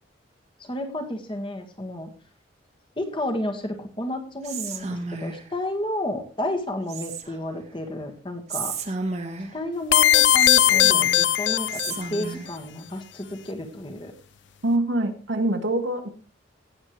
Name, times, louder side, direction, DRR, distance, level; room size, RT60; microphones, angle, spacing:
voice 1, 0.6-2.1 3.0-8.7 9.5-14.1, left 1 dB, 25° left, 4 dB, 1.6 m, -31 dB
Whispering, 4.4-5.5 6.9-7.6 8.5-9.7 10.4-11.3 11.7-12.6, right 4 dB, 35° right, 1.4 m, -33 dB
sound 1, 9.9-12.2, left 12 dB, 65° left, 0.4 m, -19 dB
voice 2, 14.6-16.1, right 1 dB, 75° right, 5 dB, 1.7 m, -24 dB
17.5 x 7.6 x 3.2 m, 0.37 s
head